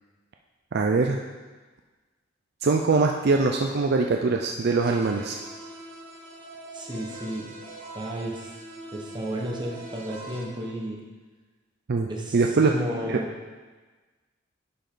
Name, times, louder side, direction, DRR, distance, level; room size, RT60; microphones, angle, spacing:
voice 1, 0.7-1.2 2.6-5.4 11.9-12.1 12.3-12.7 13.1-13.2, right 4 dB, 60° right, 3 dB, 0.5 m, -22 dB
sound 1, 4.8-10.4, right 1 dB, 75° right, 2.2 m, -42 dB
voice 2, 6.7-7.5 7.9-8.5 8.9-11.0 12.1-12.4 12.6-13.3, equal, 25° right, -2 dB, 1.3 m, -32 dB
11.0 x 5.3 x 3.9 m, 1.3 s
head